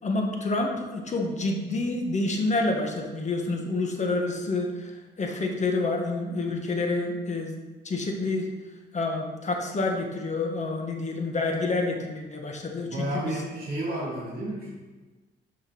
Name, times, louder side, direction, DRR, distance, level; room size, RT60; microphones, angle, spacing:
voice 1, 0.0-7.6 7.8-8.5 8.9-13.4, left 2 dB, 35° left, 2 dB, 1.5 m, -28 dB
voice 2, 12.8-14.7, right 1 dB, 50° right, -4 dB, 2.3 m, -31 dB
6.6 x 5.6 x 5.9 m, 1.3 s
cardioid pair, 90°, 20 cm